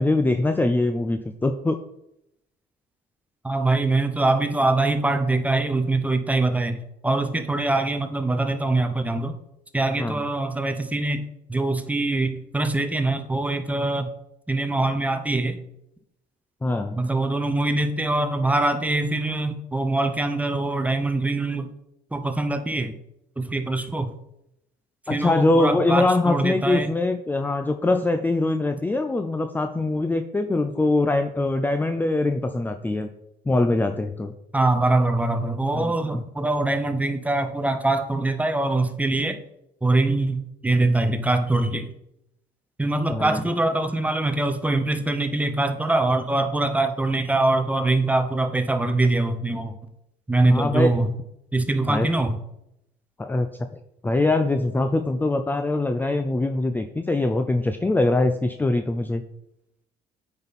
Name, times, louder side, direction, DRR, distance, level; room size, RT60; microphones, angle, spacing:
voice 1, 0.0-1.8 10.0-10.2 16.6-17.0 25.1-33.1 33.5-34.3 35.7-36.2 43.1-43.4 50.4-50.9 51.9-52.1 53.2-53.5 54.0-59.2, left 2 dB, 10° left, 7 dB, 0.4 m, -23 dB
voice 2, 3.4-9.4 9.7-14.1 14.5-15.6 17.0-21.7 22.1-23.0 23.4-24.1 25.1-26.9 34.5-39.4 39.8-41.9 42.8-49.9 50.3-51.1 51.5-52.4, right 2 dB, 10° right, 8 dB, 0.8 m, -23 dB
8.7 x 5.3 x 4.1 m, 0.82 s
cardioid pair, 110°, 17 cm